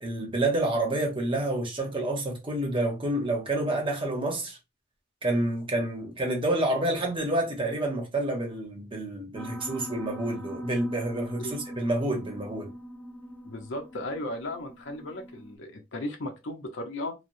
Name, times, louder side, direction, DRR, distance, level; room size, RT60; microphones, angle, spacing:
voice 1, 0.0-4.6 5.2-12.7, right 1 dB, 30° right, 0.9 m, -28 dB
Piano, 9.4-15.6, equal, 10° left, 0.3 m, -42 dB
voice 2, 13.4-17.1, left 1 dB, 80° left, 0.7 m, -36 dB
3.1 x 2.1 x 2.6 m
head